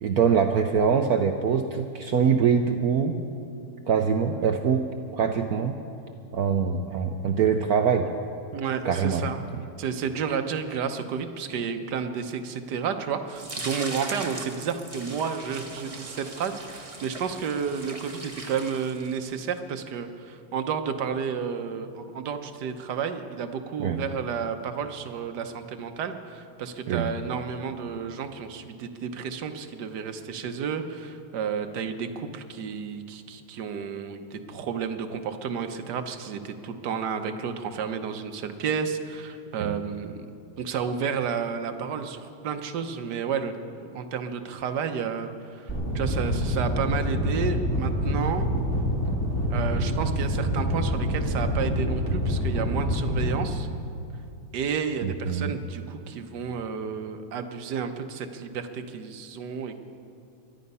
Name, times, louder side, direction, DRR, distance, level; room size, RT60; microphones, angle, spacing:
voice 1, 0.0-3.2 3.9-5.8 6.3-8.1 8.8-9.3 23.8-24.0 26.9-27.1 39.6-39.8 55.0-55.5, right 6 dB, 75° right, 5 dB, 0.8 m, -24 dB
voice 2, 8.5-9.4 9.8-40.2 40.6-43.5 43.8-48.5 49.5-53.7 54.5-59.8, right 6 dB, 60° right, 7 dB, 1.3 m, -31 dB
sound 1, 13.4-19.4, right 2 dB, 20° right, 1.0 m, -39 dB
sound 2, 45.7-53.3, equal, 10° left, 2.9 m, -26 dB
22.0 x 12.0 x 5.5 m, 2.5 s
omnidirectional pair, 2.4 m